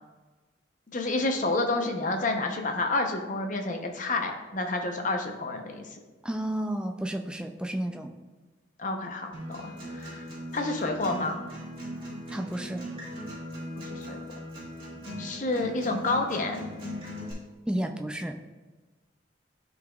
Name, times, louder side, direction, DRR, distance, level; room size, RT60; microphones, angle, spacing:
voice 1, 0.9-5.9 8.8-10.3 10.5-11.4 13.9-14.2 15.2-16.6, left 2 dB, 40° left, 3 dB, 0.8 m, -29 dB
voice 2, 6.2-8.1 12.3-12.9 17.7-18.4, right 1 dB, 5° right, 4 dB, 0.4 m, -31 dB
Acoustic guitar, 9.3-17.3, equal, 30° right, 2.0 m, -39 dB
11.5 x 4.0 x 2.4 m, 1.2 s
head